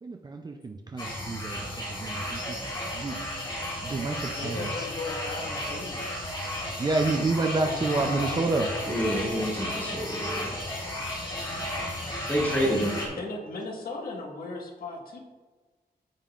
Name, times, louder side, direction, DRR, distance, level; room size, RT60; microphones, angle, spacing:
voice 1, 0.0-2.6 2.9-3.3 3.8-4.8 6.8-8.7, right 3 dB, 25° right, 4 dB, 0.5 m, -29 dB
sound 1, 1.0-13.1, left 1 dB, 30° left, 2.0 m, -34 dB
voice 2, 4.3-6.1 7.6-8.4 12.8-12.9 13.1-15.2, left 3 dB, 65° left, 0 dB, 1.5 m, -37 dB
voice 3, 8.9-10.5 12.3-12.9, equal, 10° left, -6 dB, 2.5 m, -28 dB
14.5 x 5.4 x 2.5 m, 1.3 s
wide cardioid pair, 180°, 16 cm